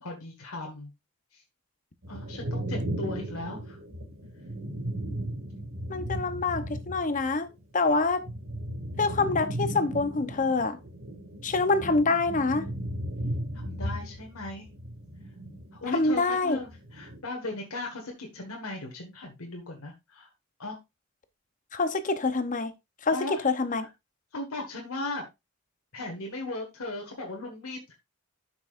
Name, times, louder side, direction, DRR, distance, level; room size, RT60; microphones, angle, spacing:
voice 1, 0.0-0.9 1.3-1.4 2.1-3.8 13.5-14.7 15.8-20.3 20.6-20.8 23.1-23.5 23.8-23.9 24.3-25.3 25.9-27.9, left 2 dB, 85° left, 1.7 m, -37 dB
sound 1, 2.0-7.3 7.6-16.2 16.5-17.2, right 1 dB, 70° right, 2.2 m, -36 dB
voice 2, 5.9-8.2 9.0-10.8 11.4-12.7 15.9-16.6 21.7-22.7 23.0-23.9, left 3 dB, 35° left, 0.8 m, -26 dB
12.0 x 6.0 x 2.5 m
head